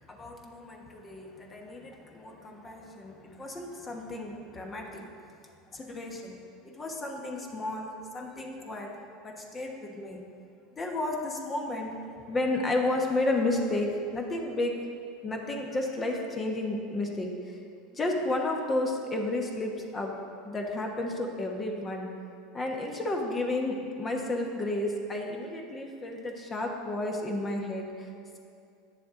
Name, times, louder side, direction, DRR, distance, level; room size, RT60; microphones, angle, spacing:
voice 1, 0.1-5.1 5.7-6.4 6.6-8.9 9.2-10.2 10.8-12.0 12.3-14.8 15.2-17.6 17.9-20.1 20.4-22.1 22.5-28.1, left 2 dB, 25° left, 1 dB, 1.1 m, -32 dB
9.6 x 6.9 x 3.8 m, 2.4 s
supercardioid pair, 105°, 0 cm